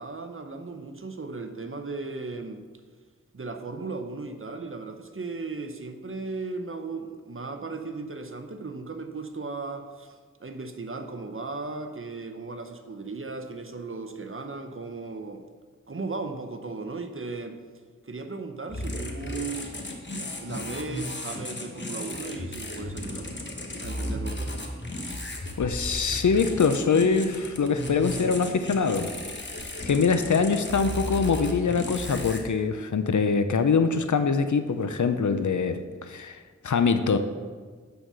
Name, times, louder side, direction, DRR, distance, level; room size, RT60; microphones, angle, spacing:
voice 1, 0.0-2.6 3.3-15.4 15.9-17.6 18.0-19.7 20.4-23.3 23.8-24.6, right 3 dB, 45° right, 7 dB, 0.8 m, -36 dB
sound 1, 18.7-32.4, left 1 dB, 40° left, 1.2 m, -35 dB
voice 2, 25.6-29.1 29.8-37.2, left 5 dB, 75° left, 9 dB, 0.6 m, -24 dB
9.5 x 4.2 x 6.1 m, 1.5 s
wide cardioid pair, 55°, 30 cm